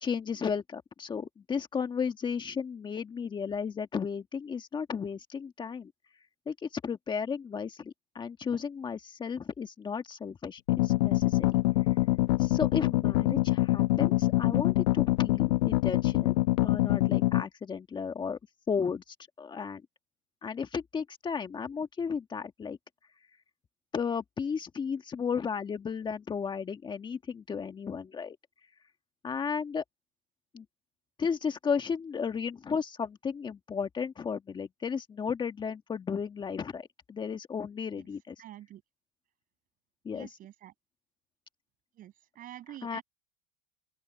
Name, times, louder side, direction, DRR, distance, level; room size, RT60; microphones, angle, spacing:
voice 1, 0.0-5.9 6.5-11.5 12.4-16.3 16.6-18.4 18.7-19.8 20.4-22.8 23.9-28.4 29.2-29.8 30.5-30.6 31.2-38.3 40.0-40.3 42.8-43.0, left 6 dB, 25° left, 1.6 m, -34 dB
sound 1, 10.7-17.4, left 19 dB, 80° left, 0.9 m, -25 dB
voice 2, 38.4-38.8 40.1-40.7 42.0-43.0, right 12 dB, 45° right, 6.5 m, -47 dB
open air
supercardioid pair, 110°, 20 cm